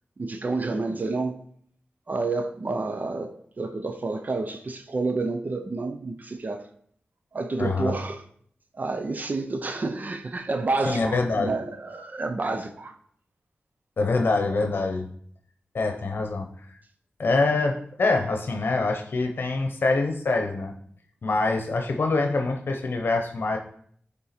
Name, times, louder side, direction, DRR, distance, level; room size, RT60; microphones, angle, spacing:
voice 1, 0.2-1.4 2.1-6.7 7.3-8.2 8.7-13.0, right 3 dB, 50° right, 0.6 m, -29 dB
voice 2, 7.6-7.9 10.8-11.5 14.0-15.1 15.7-16.5 17.2-20.7 21.2-23.6, left 3 dB, 75° left, 0.8 m, -25 dB
8.9 x 3.7 x 4.3 m
wide cardioid pair, 85°, 4 cm